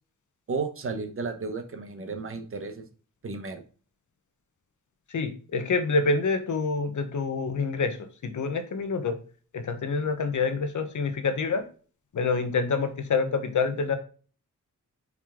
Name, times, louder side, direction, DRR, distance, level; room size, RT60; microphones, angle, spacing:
voice 1, 0.5-2.8 3.2-3.6, right 4 dB, 45° right, 6 dB, 1.0 m, -33 dB
voice 2, 5.1-8.0 8.2-9.1 9.5-11.6 12.1-14.0, left 4 dB, 70° left, 8 dB, 1.1 m, -27 dB
5.5 x 4.7 x 3.7 m, 0.39 s
wide cardioid pair, 150°, 31 cm